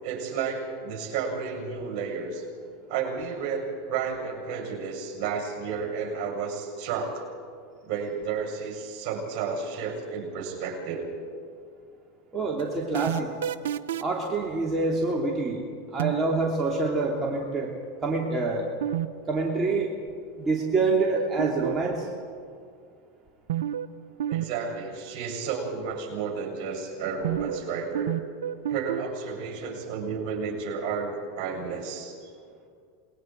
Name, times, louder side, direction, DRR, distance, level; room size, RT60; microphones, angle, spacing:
voice 1, 0.0-2.4 2.9-7.2 7.8-11.1 24.3-28.2 28.7-32.2, right 5 dB, 55° right, 1 dB, 7.6 m, -32 dB
voice 2, 12.3-13.3 14.0-15.6 15.9-17.7 18.0-18.7 19.3-19.9 20.4-22.1, right 3 dB, 20° right, -3 dB, 3.1 m, -26 dB
sound 1, 12.6-14.2 16.0-16.4 18.8-19.1 19.3-19.4 21.2-22.0 23.5-23.9 24.2-24.5 24.7-24.8 27.2-27.7 28.0-29.0, right 11 dB, 80° right, 0.7 m, -28 dB
28.0 x 21.5 x 4.7 m, 2.3 s
hypercardioid pair, 100°, 0 cm